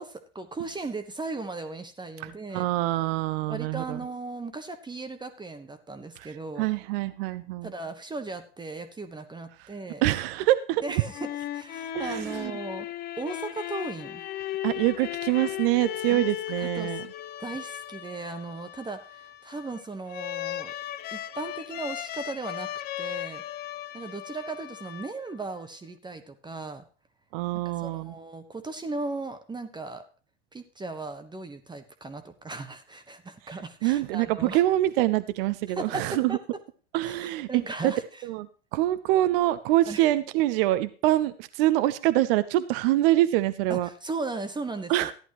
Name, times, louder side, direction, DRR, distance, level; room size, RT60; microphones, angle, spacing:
voice 1, 0.0-2.7 3.5-6.7 7.6-10.0 10.8-12.9 13.2-14.2 16.1-17.0 17.4-20.7 21.1-22.7 23.0-23.4 23.9-26.9 27.6-30.0 30.5-34.6 35.7-36.4 37.0-38.2 39.9-40.0 43.7-45.1, right 3 dB, 10° right, 8 dB, 1.1 m, -37 dB
voice 2, 2.5-4.0 6.6-7.7 10.0-10.8 11.9-12.5 14.6-17.0 27.3-28.1 33.8-36.4 36.9-37.5 37.8-37.9 38.2-38.5 38.7-43.9 44.9-45.1, right 15 dB, 50° right, 13 dB, 0.7 m, -25 dB
sound 1, 10.9-25.5, left 13 dB, 30° left, 0.6 m, -37 dB
14.5 x 11.0 x 3.0 m, 0.38 s
figure-of-eight pair, 85°, 35 cm